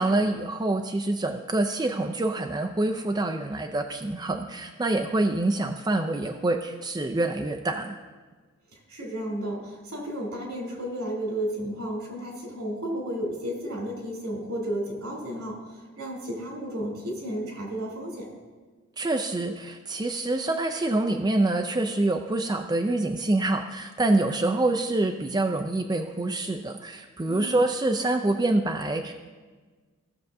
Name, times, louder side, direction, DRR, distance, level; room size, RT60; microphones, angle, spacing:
voice 1, 0.0-8.0 19.0-29.1, right 2 dB, 20° right, 4 dB, 0.3 m, -26 dB
voice 2, 8.7-18.3 27.2-27.6, right 1 dB, 80° right, -2 dB, 2.9 m, -33 dB
16.5 x 6.5 x 2.6 m, 1.4 s
head